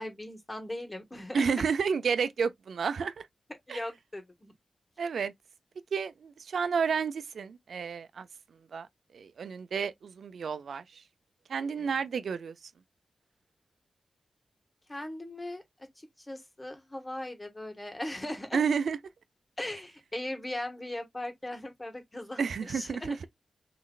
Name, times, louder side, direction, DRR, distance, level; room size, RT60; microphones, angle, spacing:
voice 1, 0.0-1.5 3.7-4.5 11.8-11.9 14.9-15.6 16.0-18.6 19.6-23.2, left 1 dB, 20° left, 1.6 m, -39 dB
voice 2, 1.3-3.3 3.7-3.8 5.0-5.3 5.9-8.3 8.7-8.9 9.1-11.0 11.5-12.5 18.5-19.0 22.4-23.2, right 6 dB, 90° right, 0.6 m, -31 dB
6.0 x 3.2 x 2.4 m
wide cardioid pair, 110°, 0 cm